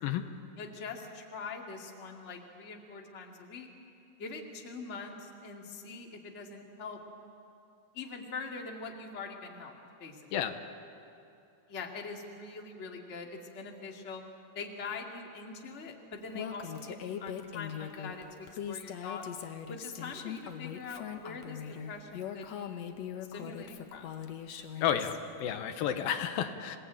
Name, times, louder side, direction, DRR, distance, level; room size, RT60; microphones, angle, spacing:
voice 1, 0.6-3.7 4.2-7.0 7.9-10.2 11.7-14.2 14.5-19.2 19.7-22.9 23.3-24.1 25.8-26.0, left 4 dB, 25° left, 1 dB, 1.7 m, -43 dB
Female speech woman speaking, 16.3-25.2, left 9 dB, 65° left, 1.8 m, -41 dB
voice 2, 24.8-26.8, left 9 dB, 80° left, 8 dB, 2.7 m, -31 dB
27.0 x 18.5 x 8.9 m, 2.7 s
omnidirectional pair, 4.3 m